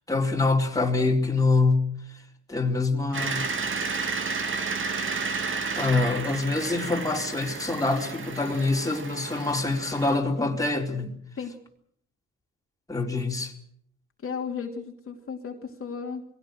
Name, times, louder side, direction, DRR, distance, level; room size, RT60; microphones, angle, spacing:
voice 1, 0.1-1.9 2.5-3.4 5.7-11.1 12.9-13.5, left 3 dB, 10° left, 4.1 m, -25 dB
sound 1, 3.1-10.2, right 4 dB, 40° right, 2.9 m, -32 dB
voice 2, 14.2-16.3, left 6 dB, 45° left, 2.9 m, -34 dB
22.5 x 17.0 x 7.9 m
cardioid pair, 90°, 30 cm